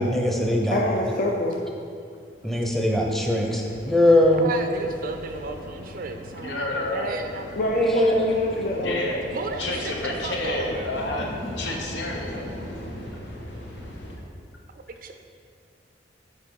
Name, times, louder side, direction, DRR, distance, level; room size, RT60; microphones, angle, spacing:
voice 1, 0.0-0.8 2.4-4.5 7.7-8.3, left 1 dB, ahead, 0 dB, 0.7 m, -21 dB
voice 2, 0.7-1.6 7.6-9.1, left 1 dB, 50° left, -1 dB, 0.5 m, -26 dB
sound 1, 2.3-14.2, left 1 dB, 70° left, 1.1 m, -39 dB
voice 3, 4.4-7.5 9.3-10.9 15.0-15.1, right 4 dB, 50° right, 6 dB, 0.4 m, -34 dB
voice 4, 6.4-7.2 8.8-9.2 9.6-11.3 11.6-12.5, left 1 dB, 90° left, 0 dB, 1.1 m, -29 dB
7.5 x 4.7 x 4.7 m, 2.4 s
head